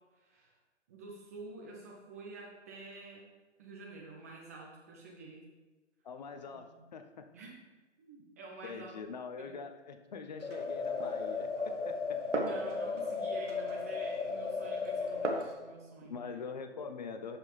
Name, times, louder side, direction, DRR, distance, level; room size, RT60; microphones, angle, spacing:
voice 1, 0.1-0.6 0.9-3.3 3.6-5.4 6.5-6.8 7.3-7.6 8.0-8.9 9.4-9.6 12.4-16.4, right 3 dB, 15° right, -2 dB, 0.5 m, -49 dB
voice 2, 6.0-7.5 8.6-12.4 16.0-17.4, left 5 dB, 35° left, 7 dB, 0.6 m, -44 dB
sound 1, 10.4-15.4, left 4 dB, 70° left, 1.0 m, -35 dB
Glass, 10.4-15.5, right 3 dB, 70° right, 1.5 m, -41 dB
12.0 x 5.7 x 3.4 m, 1.2 s
figure-of-eight pair, 130°, 37 cm